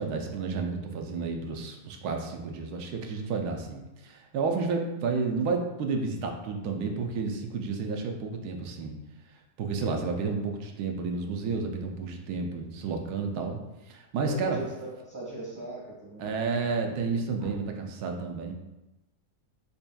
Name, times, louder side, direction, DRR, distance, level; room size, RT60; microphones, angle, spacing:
voice 1, 0.0-8.9 9.6-13.6 13.9-14.6 16.2-18.5, right 4 dB, 85° right, 3 dB, 1.1 m, -31 dB
voice 2, 14.2-16.7 17.4-17.5, right 2 dB, 25° right, -6 dB, 0.5 m, -40 dB
4.1 x 3.4 x 2.2 m, 0.99 s
omnidirectional pair, 1.6 m